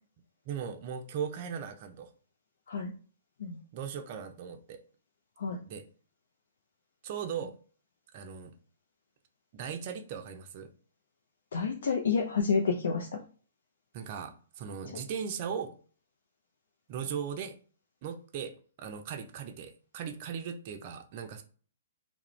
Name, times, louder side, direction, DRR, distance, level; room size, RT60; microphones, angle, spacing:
voice 1, 0.5-2.1 3.7-4.8 5.7-5.8 7.0-7.5 8.1-8.5 9.5-10.7 13.9-15.7 16.9-17.6 18.0-21.4, right 7 dB, 45° right, 0.4 m, -38 dB
voice 2, 11.5-13.1, left 5 dB, 70° left, 0.4 m, -29 dB
2.3 x 2.0 x 3.0 m
hypercardioid pair, 130°, 0 cm